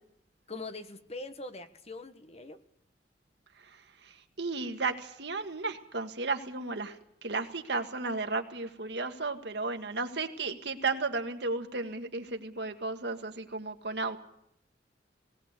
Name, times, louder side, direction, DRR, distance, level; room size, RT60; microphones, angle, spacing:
voice 1, 0.5-2.6, left 2 dB, 35° left, 9 dB, 1.3 m, -42 dB
voice 2, 4.4-7.0 7.2-14.2, right 3 dB, 65° right, 6 dB, 1.8 m, -34 dB
19.0 x 18.5 x 8.2 m, 0.73 s
head